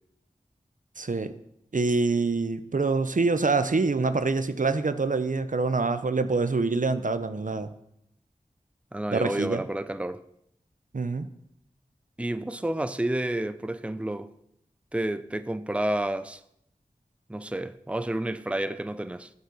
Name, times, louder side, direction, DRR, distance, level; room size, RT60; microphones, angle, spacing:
voice 1, 1.0-1.3 1.7-7.7 9.1-9.6 10.9-11.3, right 3 dB, 65° right, 0.9 m, -25 dB
voice 2, 8.9-10.2 12.2-14.3 14.9-16.4 17.3-19.3, right 1 dB, 10° right, 0.6 m, -30 dB
12.5 x 7.8 x 7.0 m
wide cardioid pair, 45°, 14 cm